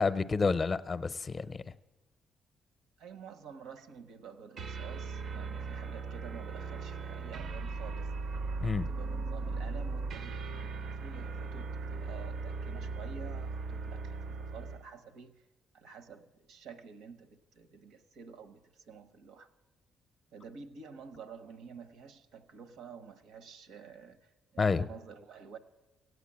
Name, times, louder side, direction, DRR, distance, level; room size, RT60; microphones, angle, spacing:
voice 1, 0.0-1.6 8.6-8.9 24.6-24.9, left 4 dB, 35° left, 0.5 m, -29 dB
voice 2, 3.0-8.1 8.6-15.4 15.7-19.5 20.3-24.2 24.5-25.6, right 6 dB, 85° right, 0.9 m, -50 dB
sound 1, 4.6-14.9, right 4 dB, 65° right, 0.5 m, -38 dB
16.5 x 8.2 x 8.5 m
cardioid pair, 90°, 0 cm